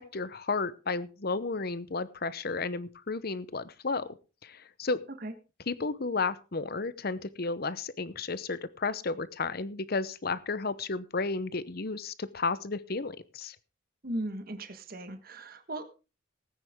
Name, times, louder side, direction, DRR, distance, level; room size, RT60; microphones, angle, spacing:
voice 1, 0.0-4.1 4.4-5.0 5.7-13.6, left 4 dB, 50° left, 16 dB, 0.9 m, -33 dB
voice 2, 14.0-15.8, right 1 dB, 50° right, 7 dB, 1.5 m, -37 dB
19.0 x 9.7 x 3.7 m, 0.32 s
head